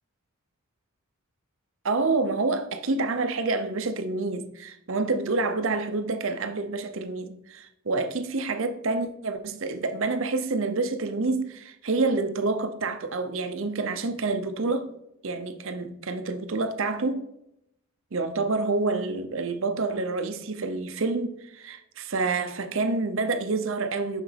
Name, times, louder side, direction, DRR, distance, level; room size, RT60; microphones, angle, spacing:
voice 1, 1.8-14.9 15.2-17.2 18.1-24.2, right 3 dB, 60° right, 0.7 m, -28 dB
6.3 x 5.9 x 3.3 m
head